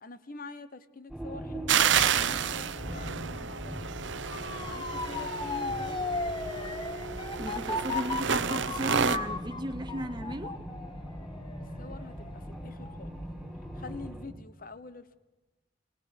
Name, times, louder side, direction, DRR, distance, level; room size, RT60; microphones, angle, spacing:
voice 1, 0.0-3.8 4.6-6.1 11.8-13.2 13.7-15.2, left 3 dB, 50° left, 1.0 m, -45 dB
sound 1, 1.1-14.2, equal, ahead, 3.5 m, -40 dB
sound 2, 1.7-9.2, right 8 dB, 90° right, 0.7 m, -30 dB
Motor vehicle (road) / Siren, 4.3-13.2 13.6-14.0, left 3 dB, 25° left, 0.9 m, -36 dB
voice 2, 7.4-10.6, right 1 dB, 25° right, 0.8 m, -35 dB
22.5 x 19.0 x 6.5 m
head